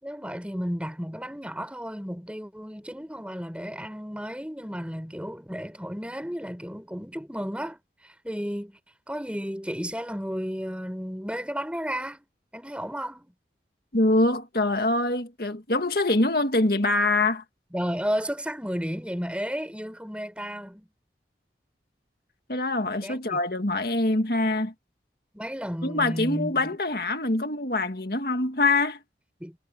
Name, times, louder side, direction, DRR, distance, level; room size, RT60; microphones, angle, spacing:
voice 1, 0.0-7.8 8.0-8.8 9.1-12.2 12.5-13.3 17.7-20.9 23.0-23.4 25.3-26.7 29.4-29.6, equal, 5° right, 6.6 m, -33 dB
voice 2, 13.9-17.4 22.5-24.7 25.8-29.0, left 2 dB, 55° left, 2.0 m, -24 dB
head